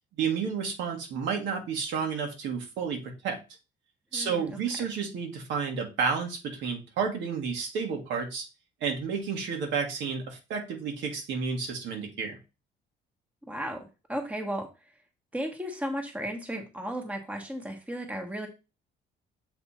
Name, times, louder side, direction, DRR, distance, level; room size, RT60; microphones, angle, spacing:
voice 1, 0.2-3.4 4.1-8.4 8.8-12.4, right 6 dB, 85° right, 2 dB, 1.8 m, -31 dB
voice 2, 4.1-4.9 13.5-13.8 14.1-14.7 15.3-18.5, equal, 5° right, 3 dB, 1.1 m, -35 dB
7.0 x 3.4 x 4.2 m, 0.29 s
cardioid pair, 150°, 19 cm